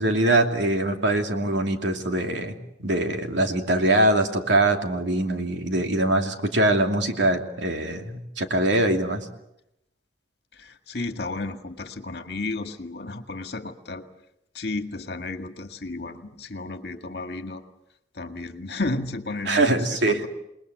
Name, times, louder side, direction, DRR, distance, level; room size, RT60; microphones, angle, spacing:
voice 1, 0.0-2.5 2.8-9.2 19.5-20.2, right 1 dB, 75° right, 4 dB, 2.7 m, -23 dB
voice 2, 10.5-14.0 14.5-17.6 18.1-20.3, left 2 dB, 60° left, 6 dB, 2.0 m, -33 dB
28.5 x 20.0 x 8.2 m, 0.84 s
head